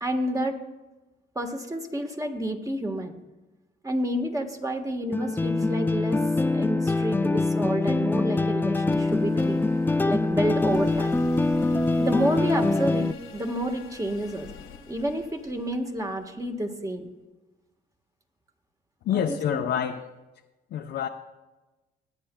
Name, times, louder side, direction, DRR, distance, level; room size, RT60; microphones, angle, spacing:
voice 1, 0.0-0.6 1.3-3.1 3.8-6.2 6.5-9.6 10.1-11.1 12.0-14.5 14.9-17.1 19.1-19.6, right 1 dB, 15° right, 4 dB, 1.3 m, -29 dB
sound 1, 5.1-13.1, left 2 dB, 10° left, 0.4 m, -24 dB
sound 2, 8.8-16.7, left 6 dB, 90° left, 1.6 m, -47 dB
voice 2, 19.0-20.1 20.7-21.1, left 9 dB, 65° left, 3 dB, 0.7 m, -27 dB
21.5 x 9.5 x 2.2 m, 1.1 s
cardioid pair, 90°, 20 cm